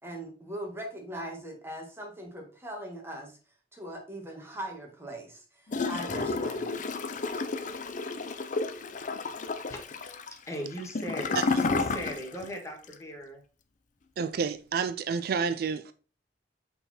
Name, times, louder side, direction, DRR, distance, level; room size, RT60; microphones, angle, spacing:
voice 1, 0.0-3.4 3.7-7.0, right 1 dB, 15° right, 1.7 m, -40 dB
Gurgling / Toilet flush, 5.7-12.5 12.8-12.9, left 3 dB, 45° left, 0.6 m, -31 dB
voice 2, 10.5-13.4, equal, 15° left, 1.5 m, -38 dB
voice 3, 14.2-15.9, right 6 dB, 60° right, 0.4 m, -29 dB
5.6 x 4.1 x 4.2 m
head